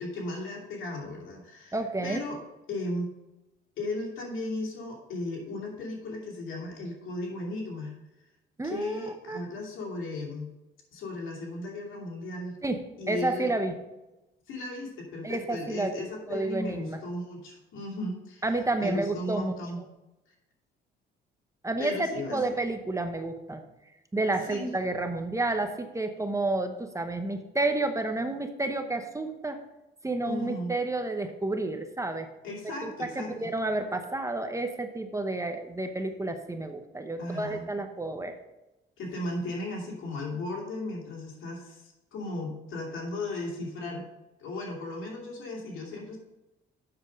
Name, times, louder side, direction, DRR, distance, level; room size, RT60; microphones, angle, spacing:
voice 1, 0.0-1.8 2.0-2.4 2.7-3.1 3.8-7.9 8.6-10.5 10.9-12.6 13.0-13.5 14.5-18.4 18.8-19.8 21.8-22.4 24.4-24.7 30.3-30.7 32.4-33.3 37.2-37.7 39.0-44.1 44.4-46.2, left 2 dB, 80° left, -2 dB, 2.7 m, -36 dB
voice 2, 1.7-2.2 8.6-9.4 12.6-13.7 15.2-15.9 16.3-17.0 18.4-19.5 21.6-23.6 24.1-29.6 30.0-32.3 32.8-38.3, right 2 dB, 15° right, 6 dB, 0.9 m, -30 dB
7.8 x 6.3 x 5.2 m, 1.0 s
cardioid pair, 90°, 20 cm